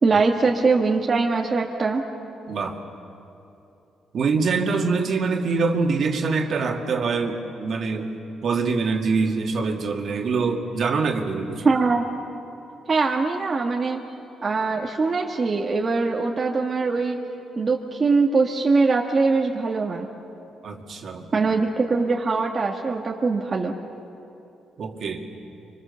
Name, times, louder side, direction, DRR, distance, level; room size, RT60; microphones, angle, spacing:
voice 1, 0.0-2.0 11.6-12.0 12.9-14.0 14.4-17.2 17.6-20.1 21.3-23.7, right 4 dB, 35° right, 0 dB, 1.6 m, -22 dB
voice 2, 2.5-2.8 4.1-8.1 8.4-11.7 20.6-21.3 24.8-25.3, right 4 dB, 55° right, 3 dB, 2.3 m, -24 dB
25.5 x 24.5 x 7.0 m, 2.8 s
cardioid pair, 90°, 0 cm